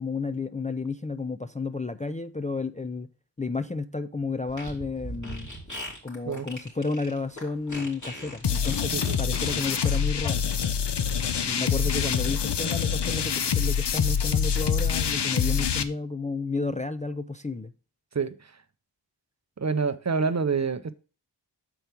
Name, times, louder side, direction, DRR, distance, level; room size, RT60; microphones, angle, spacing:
voice 1, 0.0-3.1 3.4-5.5 6.0-10.4 11.4-17.7, left 3 dB, 20° left, 0.4 m, -32 dB
Fart, 4.5-10.0, equal, 45° left, 3.0 m, -39 dB
sound 1, 8.4-15.8, left 7 dB, 75° left, 0.7 m, -26 dB
voice 2, 18.1-18.5 19.6-20.9, right 5 dB, 40° right, 0.6 m, -27 dB
6.8 x 4.6 x 5.8 m
wide cardioid pair, 65°, 42 cm